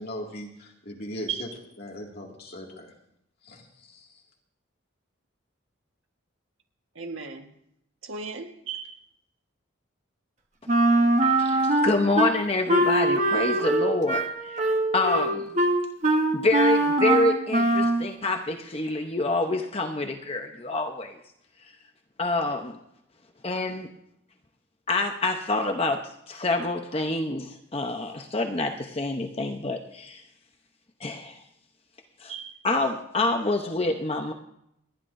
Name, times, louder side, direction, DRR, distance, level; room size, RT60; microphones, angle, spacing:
voice 1, 0.0-1.5 1.8-2.9 3.4-4.2, equal, 50° left, 2.2 m, -39 dB
voice 2, 6.9-7.5 8.0-9.0 32.3-32.6, right 6 dB, 75° right, 1.5 m, -36 dB
Wind instrument woodwind instrument, 10.7-12.3 12.7-18.0, right 2 dB, 35° right, 1.2 m, -22 dB
voice 3, 11.2-15.5 16.3-21.2 22.2-22.8 23.4-23.9 24.9-26.0 26.3-30.2 31.0-31.4 32.2-32.3 32.6-34.3, left 2 dB, 30° left, 0.8 m, -27 dB
29.0 x 10.5 x 2.6 m
head